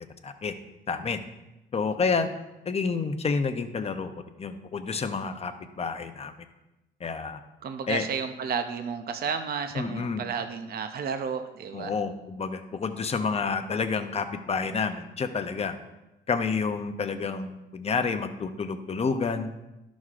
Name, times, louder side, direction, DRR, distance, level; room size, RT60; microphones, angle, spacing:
voice 1, 0.2-0.5 0.9-1.2 1.7-2.3 2.7-4.1 4.4-6.3 7.0-7.4 7.9-8.1 9.8-10.2 11.7-15.8 16.3-19.5, left 5 dB, 30° left, 8 dB, 0.7 m, -29 dB
voice 2, 7.6-11.9, right 6 dB, 50° right, 8 dB, 0.6 m, -32 dB
11.0 x 6.1 x 2.5 m, 0.97 s
cardioid pair, 90°, 20 cm